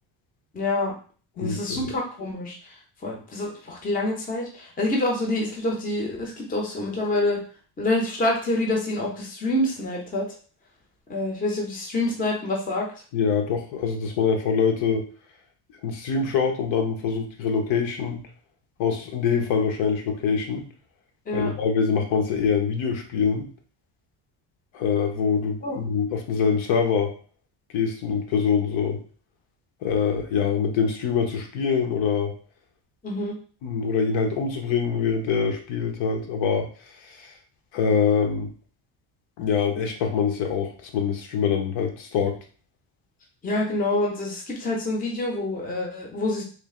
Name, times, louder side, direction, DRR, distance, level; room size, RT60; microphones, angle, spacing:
voice 1, 0.5-0.9 1.4-2.7 3.0-7.4 7.8-10.3 11.1-12.9 21.3-21.5 25.6-25.8 33.0-33.3 43.4-46.4, left 2 dB, 20° left, -1 dB, 0.6 m, -26 dB
voice 2, 1.4-1.9 13.1-15.1 15.8-18.2 18.8-20.6 21.3-23.5 24.7-27.1 27.7-29.0 29.8-32.3 33.6-36.7 37.0-37.3 37.7-38.5 39.4-42.4, left 6 dB, 70° left, 3 dB, 0.8 m, -24 dB
3.3 x 2.5 x 3.6 m, 0.40 s
cardioid pair, 175°, 49 cm